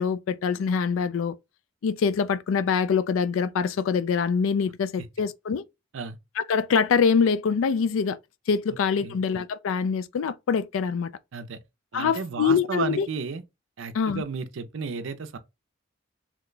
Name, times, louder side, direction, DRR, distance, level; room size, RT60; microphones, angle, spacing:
voice 1, 0.0-1.4 1.8-5.6 6.4-8.2 8.5-11.1 11.9-13.1 13.9-14.2, left 6 dB, 80° left, 0.3 m, -24 dB
voice 2, 11.9-13.4 13.8-15.4, right 5 dB, 75° right, 0.5 m, -33 dB
2.9 x 2.2 x 3.8 m
head